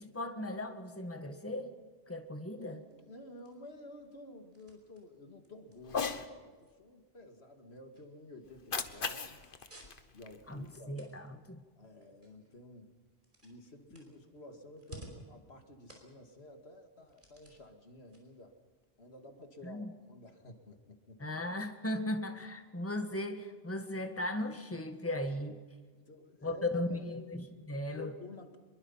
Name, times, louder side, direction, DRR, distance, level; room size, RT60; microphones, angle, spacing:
voice 1, 0.0-1.7 2.1-2.8 10.5-11.6 19.6-19.9 21.2-25.6 26.4-28.1, left 1 dB, 15° left, 6 dB, 1.6 m, -37 dB
voice 2, 2.5-9.3 10.1-11.0 11.8-12.9 13.4-18.6 19.0-21.2 25.9-27.4 27.9-28.6, left 2 dB, 85° left, 5 dB, 2.5 m, -52 dB
sound 1, 2.6-19.5, right 1 dB, 50° right, 5.2 m, -60 dB
Cat, 5.8-6.3 8.5-10.8, left 5 dB, 55° left, 1.4 m, -38 dB
25.0 x 22.5 x 5.7 m, 1.4 s
omnidirectional pair, 1.1 m